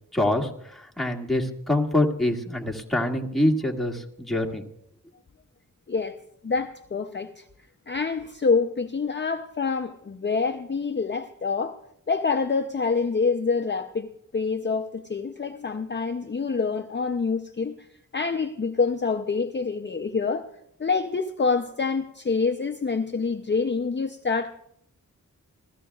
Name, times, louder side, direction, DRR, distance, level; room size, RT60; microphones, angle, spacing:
voice 1, 0.1-0.5 1.0-4.6, left 1 dB, ahead, 2.0 m, -25 dB
voice 2, 6.4-7.5 7.9-11.8 12.1-17.9 18.1-20.5 20.8-24.5, left 4 dB, 35° left, 0.6 m, -26 dB
27.0 x 16.0 x 2.4 m
wide cardioid pair, 85°, 33 cm